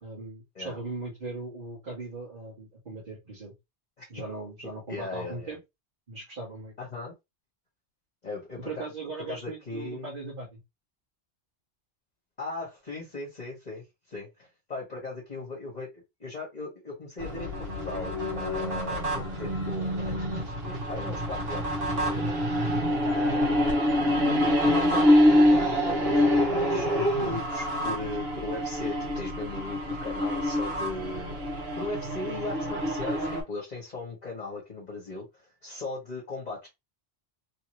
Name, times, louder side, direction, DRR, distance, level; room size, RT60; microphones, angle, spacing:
voice 1, 0.0-3.5 4.1-5.6 6.1-6.7 8.6-10.6 17.9-18.0 23.3-23.4, right 3 dB, 50° right, 1.6 m, -39 dB
voice 2, 4.9-5.5 6.8-7.1 8.2-8.8 9.3-10.1 12.4-15.9 16.2-22.4 23.0-24.0 24.6-31.4 31.8-36.7, left 3 dB, 40° left, 1.3 m, -38 dB
sound 1, 17.2-33.4, equal, 70° right, 1.5 m, -26 dB
3.3 x 2.8 x 3.0 m
omnidirectional pair, 1.1 m